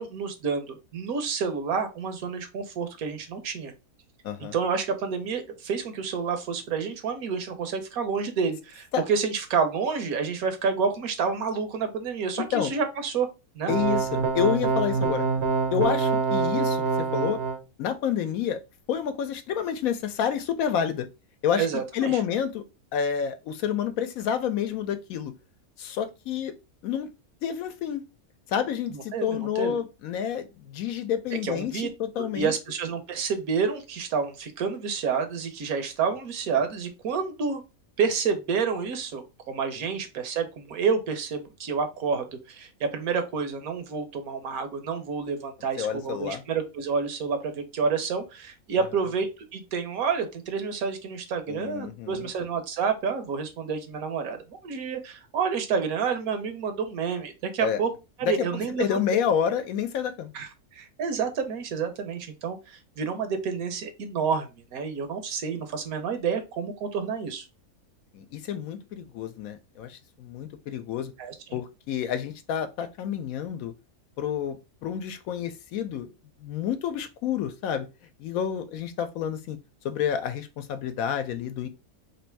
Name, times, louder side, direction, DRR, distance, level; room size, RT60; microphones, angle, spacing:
voice 1, 0.0-3.7 4.5-13.3 13.5-13.7 21.6-22.2 28.9-29.8 31.4-31.9 32.2-37.6 38.0-54.4 54.6-57.9 58.2-59.0 60.3-67.4 71.2-71.6, right 5 dB, 75° right, 1.2 m, -29 dB
voice 2, 4.2-4.5 8.9-9.1 12.4-12.7 13.7-15.3 15.7-16.8 17.1-17.4 17.8-18.6 18.9-21.1 21.4-21.7 21.9-22.6 22.9-25.3 25.8-26.5 26.8-27.1 27.4-28.0 28.5-32.5 45.8-46.4 48.8-48.9 51.5-52.3 57.6-57.8 58.2-58.3 58.8-60.3 68.1-71.1 71.5-73.7 74.2-76.1 76.4-77.9 78.2-79.6 79.8-81.7, left 8 dB, 75° left, 1.0 m, -29 dB
sound 1, 13.7-17.6, right 4 dB, 60° right, 0.8 m, -25 dB
3.3 x 2.6 x 4.4 m
omnidirectional pair, 1.6 m